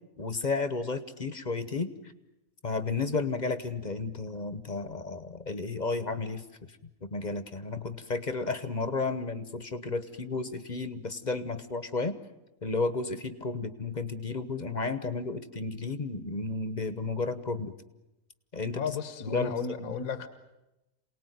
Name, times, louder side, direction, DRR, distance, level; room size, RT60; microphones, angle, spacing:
voice 1, 0.2-2.1 2.6-6.4 7.0-12.2 12.6-17.7 18.5-18.8 19.3-19.9, left 3 dB, 35° left, 12 dB, 1.1 m, -32 dB
voice 2, 18.8-20.3, left 6 dB, 75° left, 10 dB, 1.6 m, -33 dB
28.0 x 19.0 x 9.3 m, 0.98 s
omnidirectional pair, 1.5 m